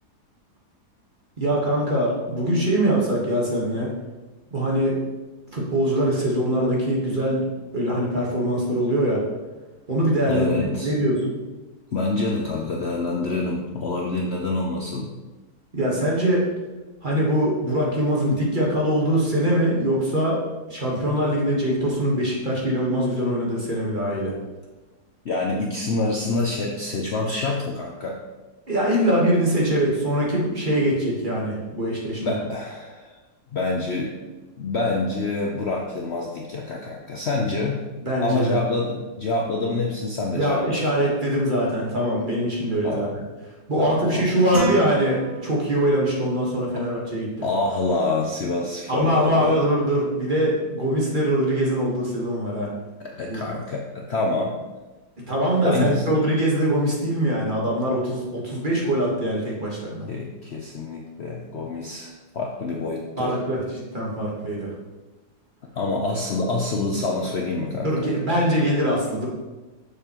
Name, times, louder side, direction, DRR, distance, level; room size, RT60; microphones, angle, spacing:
voice 1, 1.4-3.9 4.5-5.0 5.5-9.2 9.9-11.3 15.7-16.5 17.0-20.4 20.7-24.4 28.7-32.3 38.0-38.5 40.3-43.2 43.7-47.4 48.9-52.7 53.3-53.4 55.2-60.1 63.2-63.6 63.9-64.7 67.8-69.3, right 1 dB, 30° right, -4 dB, 1.5 m, -23 dB
voice 2, 10.3-10.9 11.9-15.1 21.0-21.1 25.2-28.2 32.2-33.2 33.5-34.1 34.6-37.8 38.2-41.2 42.8-43.0 43.8-44.3 46.8-46.9 47.4-49.6 53.0-54.6 55.6-56.0 60.1-63.4 65.8-68.1, left 2 dB, 55° left, -1 dB, 0.8 m, -26 dB
sound 1, 44.5-46.0, right 1 dB, 65° right, 2.5 m, -29 dB
6.8 x 6.7 x 3.0 m, 1.2 s
omnidirectional pair, 1.7 m